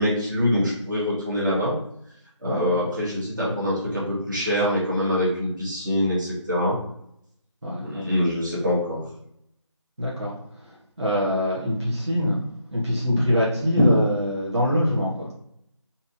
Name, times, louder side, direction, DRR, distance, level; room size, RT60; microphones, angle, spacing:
voice 1, 0.0-1.7 2.4-6.8 7.8-9.0, left 1 dB, 40° right, -6 dB, 1.4 m, -24 dB
voice 2, 7.6-8.1 10.0-10.3 10.6-12.4 12.7-15.3, equal, 60° right, -6 dB, 1.1 m, -23 dB
3.3 x 2.8 x 2.5 m, 0.75 s
figure-of-eight pair, 170°, 16 cm